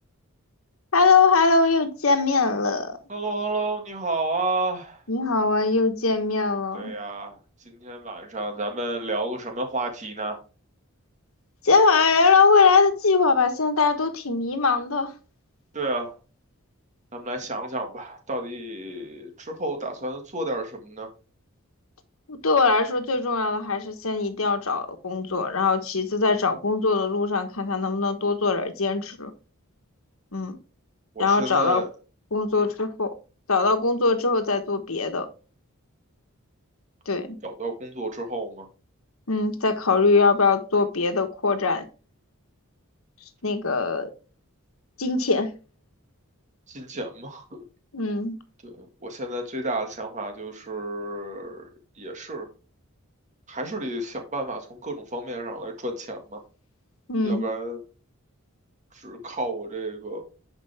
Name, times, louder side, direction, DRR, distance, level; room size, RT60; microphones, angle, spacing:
voice 1, 0.9-3.0 5.1-6.9 11.6-15.1 22.3-29.3 30.3-30.6 31.2-31.8 32.3-33.1 33.5-35.3 37.1-37.4 39.3-41.8 43.4-44.1 45.0-45.5 47.9-48.4 57.1-57.4, left 4 dB, 75° left, 1.3 m, -22 dB
voice 2, 3.1-5.0 6.7-7.4 7.8-10.4 15.7-16.1 17.1-21.1 31.1-31.9 32.6-32.7 37.4-38.7 46.7-47.6 48.8-51.7 52.0-52.5 53.5-56.4 57.2-57.8 58.9-60.2, right 2 dB, 35° right, 1.8 m, -31 dB
10.0 x 5.2 x 3.4 m
head